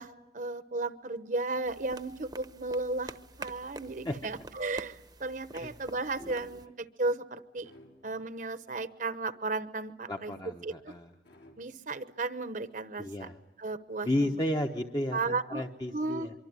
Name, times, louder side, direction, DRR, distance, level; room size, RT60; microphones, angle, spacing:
voice 1, 0.0-7.7 8.0-10.3 10.6-10.9 11.6-13.3 13.6-14.4 15.1-15.6 15.9-16.3, right 3 dB, 45° right, 12 dB, 0.9 m, -34 dB
sound 1, 1.7-6.7, right 2 dB, 20° right, 0.9 m, -48 dB
sound 2, 7.6-8.5 11.2-12.0 14.1-14.9, left 1 dB, 70° left, 4.5 m, -58 dB
voice 2, 10.1-11.1 13.0-13.3 14.0-16.3, left 1 dB, 20° left, 4 dB, 1.0 m, -33 dB
24.5 x 24.5 x 9.6 m, 0.96 s
head